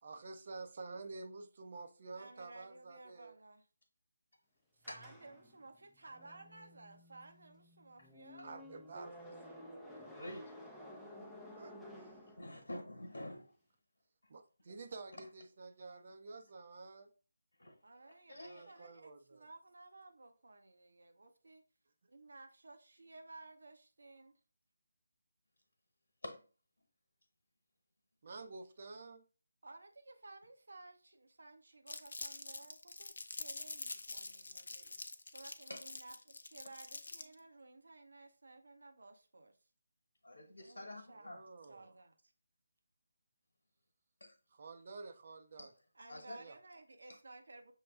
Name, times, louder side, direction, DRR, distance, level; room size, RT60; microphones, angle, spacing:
voice 1, 0.0-3.3 8.4-9.6 11.6-12.1 14.3-17.1 18.3-19.4 28.2-29.2 41.1-41.9 44.5-45.7 46.4-46.6, right 3 dB, 45° right, 0.7 m, -50 dB
voice 2, 2.1-3.7 4.7-8.5 17.8-21.6 22.1-24.4 29.6-39.6 40.6-42.2 45.9-47.7, right 2 dB, 75° right, 0.9 m, -56 dB
sound 1, 4.8-12.9, left 1 dB, 5° right, 0.6 m, -54 dB
voice 3, 10.0-10.5 12.4-13.5 17.6-17.8 18.3-18.9 26.2-26.4 35.7-35.8 40.2-41.4 44.2-44.3 45.6-45.7 46.1-46.4, left 1 dB, 85° left, 1.0 m, -47 dB
Crumpling crinkling, 31.9-37.4, left 3 dB, 65° left, 0.5 m, -46 dB
6.3 x 2.3 x 3.5 m
figure-of-eight pair, 160°, 0 cm